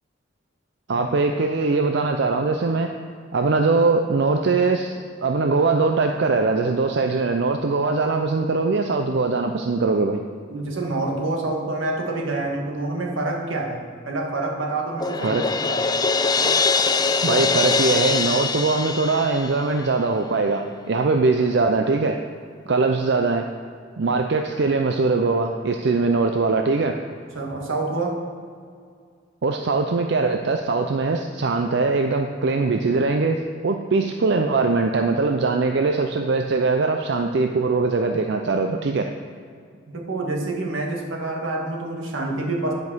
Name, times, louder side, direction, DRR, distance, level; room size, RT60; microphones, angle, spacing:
voice 1, 0.9-2.9 3.3-10.2 15.2-15.4 17.2-22.2 22.7-23.5 24.0-27.0 29.4-39.1, right 3 dB, 60° right, 4 dB, 0.5 m, -21 dB
voice 2, 10.5-15.4 15.6-16.0 27.3-28.2 39.9-42.7, right 2 dB, 85° right, 0 dB, 1.7 m, -27 dB
Crash cymbal, 15.0-19.9, left 4 dB, 20° left, 0.4 m, -22 dB
10.5 x 5.3 x 6.1 m, 2.2 s
head